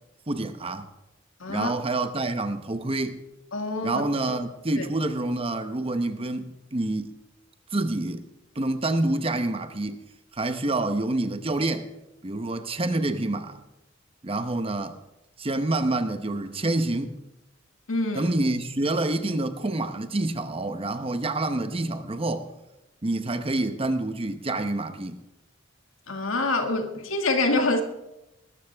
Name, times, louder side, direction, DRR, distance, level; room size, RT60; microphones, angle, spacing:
voice 1, 0.3-0.9 1.5-3.2 3.8-7.1 7.7-8.2 8.5-10.0 10.3-11.9 12.2-13.6 14.2-15.0 15.4-17.2 18.1-22.5 23.0-25.2, right 2 dB, 30° right, 0.9 m, -27 dB
voice 2, 1.4-1.7 3.5-4.0 4.8-4.9 17.9-18.3 26.1-27.8, left 2 dB, 90° left, 2.1 m, -26 dB
20.0 x 13.5 x 3.5 m
head